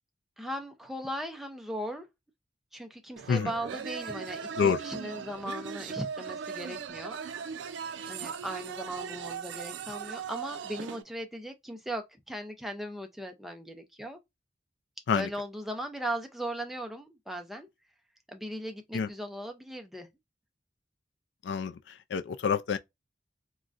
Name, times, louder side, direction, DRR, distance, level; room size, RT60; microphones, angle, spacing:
voice 1, 0.4-2.1 2.7-7.2 8.1-14.2 15.1-17.7 18.3-20.1, equal, ahead, 0.4 m, -38 dB
sound 1, 3.2-11.0, right 7 dB, 90° right, 0.3 m, -39 dB
voice 2, 21.4-22.8, left 6 dB, 80° left, 0.4 m, -28 dB
3.8 x 2.1 x 2.4 m
head